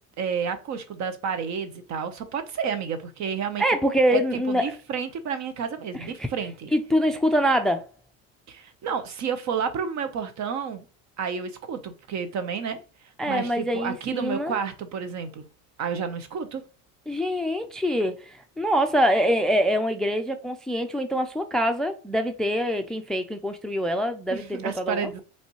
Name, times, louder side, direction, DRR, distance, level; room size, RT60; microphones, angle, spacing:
voice 1, 0.2-3.6 4.1-6.7 8.5-10.9 11.2-12.8 13.2-15.5 15.8-16.6 24.3-25.2, right 6 dB, 50° right, 1.0 m, -30 dB
voice 2, 3.6-4.6 6.0-6.3 6.7-7.9 13.2-14.6 17.1-25.2, equal, ahead, 0.4 m, -24 dB
5.3 x 3.3 x 3.0 m
supercardioid pair, 110°, 36 cm